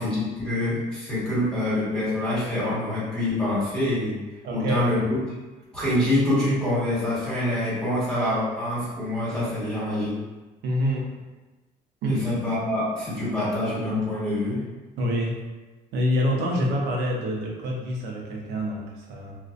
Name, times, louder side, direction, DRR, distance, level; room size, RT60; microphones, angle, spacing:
voice 1, 0.0-4.2 4.5-5.2 5.7-10.2 12.1-14.6, left 1 dB, 5° left, -10 dB, 1.3 m, -25 dB
voice 2, 4.4-4.9 10.6-11.1 12.0-12.2 15.0-15.4 15.9-19.4, equal, 85° right, -1 dB, 0.6 m, -26 dB
2.4 x 2.1 x 2.4 m, 1.2 s
cardioid pair, 110°, 17 cm